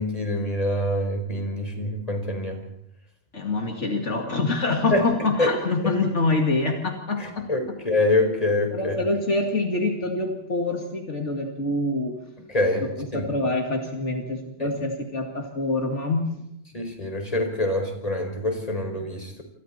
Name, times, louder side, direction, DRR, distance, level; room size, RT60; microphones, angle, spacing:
voice 1, 0.0-2.6 4.9-5.1 5.4-5.5 7.2-9.0 12.5-12.8 13.1-13.2 14.6-14.7 16.7-19.4, left 1 dB, 30° left, 3 dB, 4.8 m, -25 dB
voice 2, 3.3-7.8 8.7-12.2 12.8-16.4, left 2 dB, 75° left, 2 dB, 2.7 m, -26 dB
28.0 x 27.5 x 4.3 m, 0.77 s
omnidirectional pair, 1.2 m